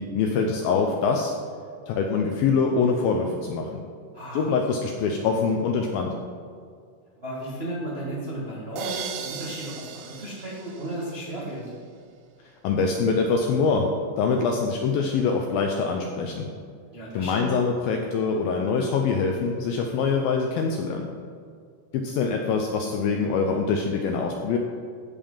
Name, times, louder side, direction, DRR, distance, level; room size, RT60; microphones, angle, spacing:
voice 1, 0.0-1.3 1.9-3.8 4.3-6.1 12.6-13.9 14.2-16.5 17.1-21.1 21.9-24.6, left 5 dB, 80° left, 2 dB, 2.1 m, -24 dB
voice 2, 4.1-4.5 5.0-5.1 7.2-11.7 16.9-17.5, right 1 dB, 70° right, -7 dB, 0.5 m, -34 dB
sound 1, 8.8-11.6, right 6 dB, 85° right, 3.1 m, -38 dB
15.0 x 5.4 x 5.6 m, 2.2 s
omnidirectional pair, 5.0 m